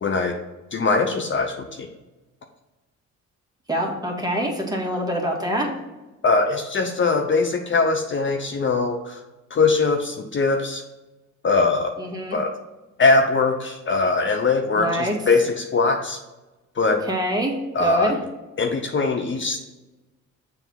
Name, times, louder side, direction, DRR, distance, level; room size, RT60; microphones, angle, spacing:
voice 1, 0.0-0.3 0.7-1.9 6.2-9.2 9.5-10.8 11.4-11.9 12.3-12.5 13.0-16.2 16.8-17.0 17.7-18.1 18.6-19.6, left 3 dB, 40° left, 4 dB, 0.8 m, -21 dB
voice 2, 3.7-5.7 12.0-12.4 14.8-15.1 17.0-17.5 17.8-18.2, right 1 dB, 15° right, -1 dB, 1.8 m, -25 dB
7.0 x 3.4 x 5.7 m, 1.1 s
cardioid pair, 90°, 30 cm